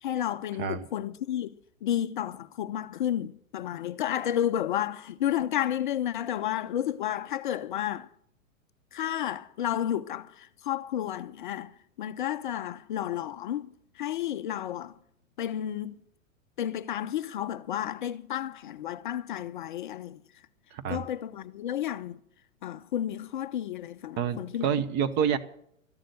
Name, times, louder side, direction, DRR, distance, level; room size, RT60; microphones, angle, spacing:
voice 1, 0.0-1.6 1.8-8.1 8.9-15.0 15.4-16.0 16.6-20.2 20.9-22.2 22.6-24.7, left 11 dB, 40° left, 0.5 m, -31 dB
voice 2, 20.7-21.0 24.2-25.4, right 8 dB, 25° right, 0.9 m, -28 dB
13.5 x 11.5 x 6.7 m
figure-of-eight pair, 105°, 41 cm